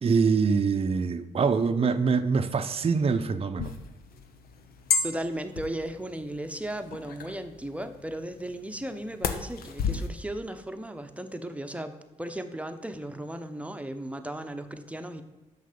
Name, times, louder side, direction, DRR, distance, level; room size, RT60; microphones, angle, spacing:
voice 1, 0.0-3.7, right 5 dB, 40° right, 0.6 m, -24 dB
sound 1, 3.6-10.1, left 5 dB, 75° left, 0.8 m, -33 dB
voice 2, 5.0-15.2, right 1 dB, 10° right, 0.9 m, -36 dB
6.3 x 5.6 x 6.8 m
supercardioid pair, 50°, 16 cm